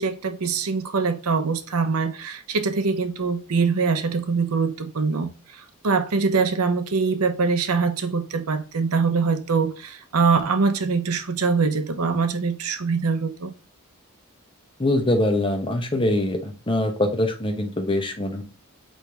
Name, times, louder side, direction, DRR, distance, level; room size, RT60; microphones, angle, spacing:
voice 1, 0.0-5.3 5.8-13.5, right 4 dB, 85° right, 0.7 m, -23 dB
voice 2, 14.8-16.4 16.7-18.4, left 1 dB, 25° left, 0.8 m, -23 dB
4.4 x 3.2 x 3.4 m
head